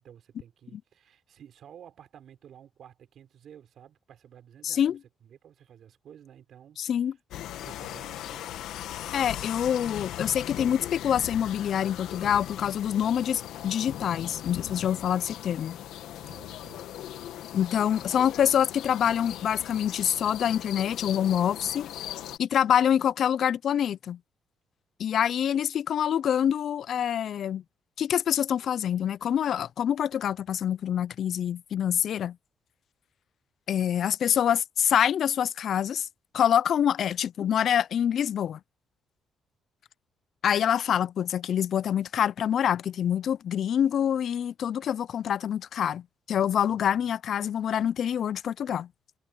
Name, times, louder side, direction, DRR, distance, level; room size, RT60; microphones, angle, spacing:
voice 1, 0.0-6.9 7.4-8.6 16.2-16.9 46.7-47.1, right 9 dB, 65° right, 3.8 m, -52 dB
voice 2, 4.6-5.0 6.8-7.1 9.1-15.8 17.5-21.9 22.4-24.2 25.0-27.6 28.0-32.4 33.7-36.1 36.3-38.6 40.4-48.9, left 9 dB, 65° left, 0.4 m, -26 dB
sound 1, 7.3-22.4, left 12 dB, 85° left, 1.7 m, -39 dB
cardioid pair, 90°, 0 cm